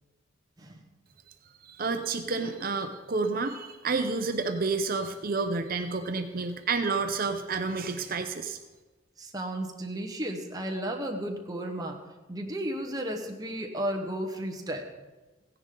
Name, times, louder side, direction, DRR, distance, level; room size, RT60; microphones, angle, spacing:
voice 1, 1.6-8.6, right 4 dB, 45° right, 6 dB, 0.7 m, -30 dB
voice 2, 9.2-12.0 12.3-14.9, right 1 dB, 20° right, 2 dB, 1.2 m, -33 dB
16.0 x 10.0 x 3.9 m, 1.2 s
head